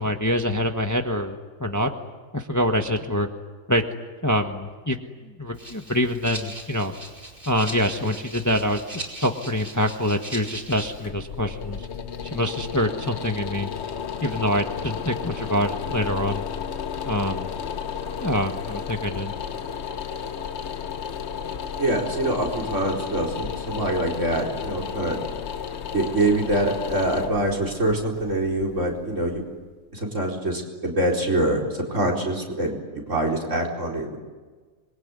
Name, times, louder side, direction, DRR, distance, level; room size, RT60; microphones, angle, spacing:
voice 1, 0.0-1.9 2.3-3.3 3.7-3.8 4.2-5.0 5.4-6.9 7.5-8.8 9.2-11.9 12.3-13.7 14.2-16.5 17.0-17.5 18.2-19.3, equal, 15° left, 5 dB, 1.4 m, -25 dB
Rattle (instrument), 5.5-11.1, right 1 dB, 40° right, 5.3 m, -39 dB
sound 1, 10.9-29.6, left 7 dB, 55° left, 1.2 m, -33 dB
voice 2, 21.8-25.2 25.9-29.4 29.9-34.2, right 1 dB, 60° right, 2 dB, 4.7 m, -25 dB
26.5 x 22.0 x 9.7 m, 1.4 s
omnidirectional pair, 1.5 m